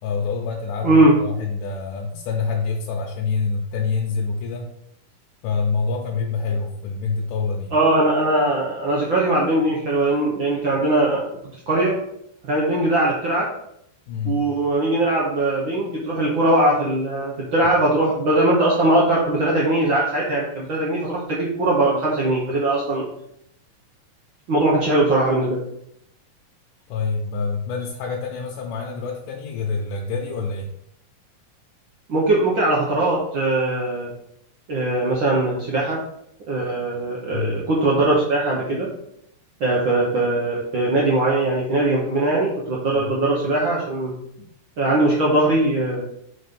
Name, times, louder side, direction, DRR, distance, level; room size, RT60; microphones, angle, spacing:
voice 1, 0.0-4.7 5.4-7.7 14.1-14.4 26.9-30.7 37.3-37.6 42.9-43.1 44.4-44.5, left 4 dB, 80° left, -1 dB, 2.2 m, -26 dB
voice 2, 0.8-1.1 7.7-11.3 11.7-12.0 12.4-13.5 14.2-23.0 24.5-25.6 32.1-34.1 34.7-36.0 36.5-38.9 39.6-44.1 44.8-46.0, right 2 dB, 80° right, -4 dB, 1.1 m, -20 dB
5.0 x 4.1 x 5.2 m, 0.77 s
omnidirectional pair, 3.7 m